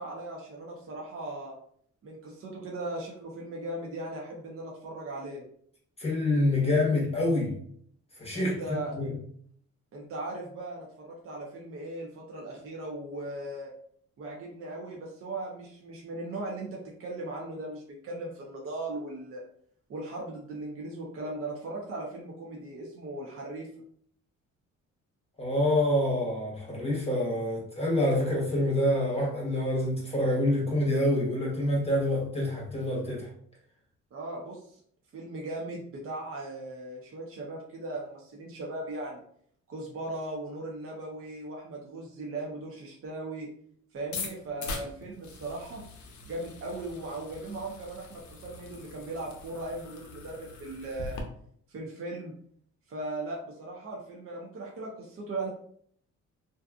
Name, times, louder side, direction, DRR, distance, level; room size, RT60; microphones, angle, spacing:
voice 1, 0.0-1.6 2.0-5.4 8.3-8.9 9.9-13.7 14.2-19.4 19.9-23.7 34.1-34.8 35.1-39.2 39.7-43.5 43.9-45.8 46.2-51.2 51.7-52.3 52.9-55.5, right 2 dB, 45° right, -2 dB, 0.6 m, -38 dB
voice 2, 6.0-7.6 8.2-8.6 8.9-9.2 25.4-33.3, left 1 dB, 20° left, -3 dB, 1.0 m, -26 dB
sound 1, 44.0-51.2, left 3 dB, 70° left, 0.6 m, -42 dB
2.6 x 2.3 x 2.3 m, 0.63 s
cardioid pair, 90°, 30 cm